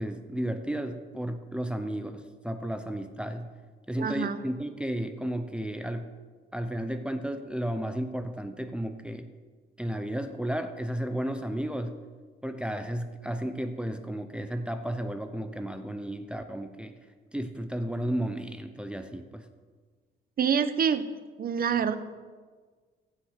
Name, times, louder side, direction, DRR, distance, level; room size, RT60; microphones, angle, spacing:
voice 1, 0.0-3.5 3.9-6.1 6.5-9.3 9.8-12.0 12.4-16.9 17.3-19.5, right 1 dB, 5° right, 7 dB, 0.7 m, -33 dB
voice 2, 4.0-4.4 20.4-21.0 21.4-22.0, right 7 dB, 50° right, 12 dB, 0.8 m, -26 dB
15.5 x 5.9 x 5.7 m, 1.5 s
cardioid pair, 90°, 20 cm